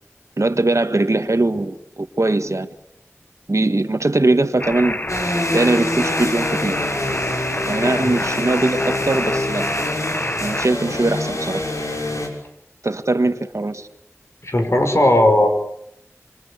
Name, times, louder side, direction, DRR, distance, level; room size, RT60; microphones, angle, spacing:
voice 1, 0.4-2.7 3.5-5.0 5.5-6.8 7.7-9.6 10.4-11.6 12.8-13.9, right 2 dB, 75° right, 9 dB, 1.7 m, -20 dB
sound 1, 4.6-10.7, left 1 dB, 35° left, 1.3 m, -26 dB
sound 2, 5.1-12.3, left 1 dB, 85° left, 6.2 m, -26 dB
voice 2, 14.4-15.5, left 1 dB, 60° left, 5 dB, 5.9 m, -16 dB
27.5 x 26.0 x 8.4 m, 0.77 s
wide cardioid pair, 45°, 5 cm